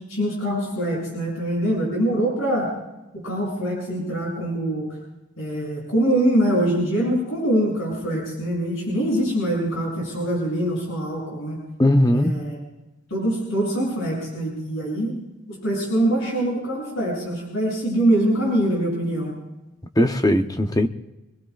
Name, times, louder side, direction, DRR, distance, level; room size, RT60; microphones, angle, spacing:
voice 1, 0.1-2.7 3.1-4.9 5.4-11.6 12.1-12.6 13.1-15.1 15.5-19.3, right 1 dB, 75° left, -3 dB, 7.9 m, -24 dB
voice 2, 11.8-12.4 20.0-20.9, left 1 dB, 20° left, 7 dB, 0.8 m, -18 dB
27.0 x 21.5 x 2.5 m, 0.99 s
head